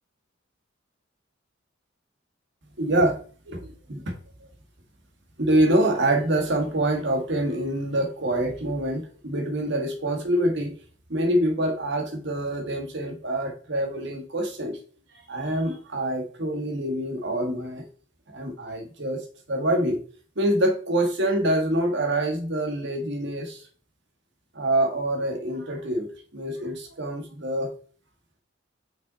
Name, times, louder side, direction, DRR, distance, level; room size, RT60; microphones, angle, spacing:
voice 1, 2.8-3.2 3.5-4.0 5.4-10.7 11.1-14.8 15.3-17.8 18.3-19.2 19.5-20.0 20.3-23.6 24.5-27.7, right 1 dB, 60° right, 3 dB, 1.6 m, -25 dB
5.9 x 5.4 x 4.1 m, 0.41 s
head